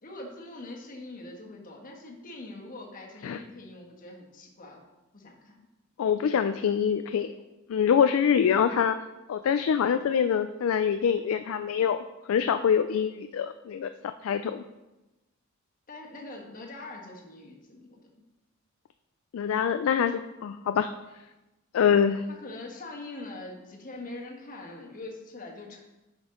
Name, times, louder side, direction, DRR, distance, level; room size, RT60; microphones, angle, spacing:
voice 1, 0.0-4.8 5.1-5.6 15.9-18.1 22.3-25.8, left 2 dB, 40° left, 0 dB, 1.4 m, -43 dB
voice 2, 6.0-7.3 7.7-9.0 9.3-12.0 12.3-14.6 19.3-20.9 21.7-22.2, left 7 dB, 80° left, 9 dB, 0.3 m, -25 dB
9.8 x 5.3 x 3.8 m, 1.0 s
head